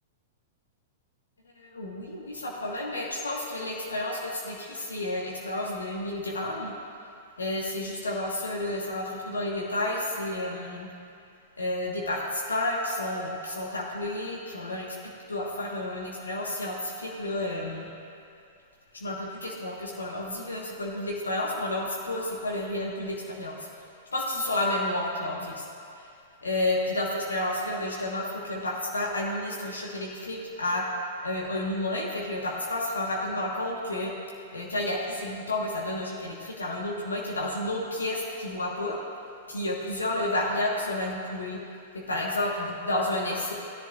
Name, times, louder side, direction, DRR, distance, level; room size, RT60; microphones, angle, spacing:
voice 1, 1.6-6.7 7.4-10.9 11.6-15.0 15.3-17.9 18.9-23.7 24.1-25.6 26.0-26.1 26.4-30.8 31.2-34.1 34.5-39.0 39.5-41.6 41.9-43.5, left 1 dB, 75° left, -2 dB, 1.4 m, -31 dB
17.0 x 10.0 x 2.5 m, 2.5 s
figure-of-eight pair, 100°, 0 cm